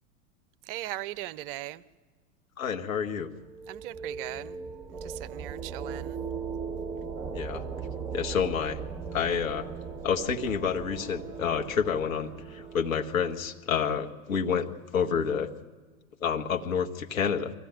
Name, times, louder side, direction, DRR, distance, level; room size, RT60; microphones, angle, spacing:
voice 1, 0.7-1.8 3.7-4.6 4.9-6.2, right 15 dB, 40° right, 0.6 m, -38 dB
voice 2, 2.6-3.3 7.3-7.6 8.1-8.8 9.1-9.7 10.0-14.7 14.9-15.5 16.2-17.5, left 7 dB, 65° left, 1.7 m, -28 dB
sound 1, 3.2-13.7, right 5 dB, 5° right, 1.6 m, -38 dB
24.0 x 15.5 x 9.2 m
figure-of-eight pair, 100°, 44 cm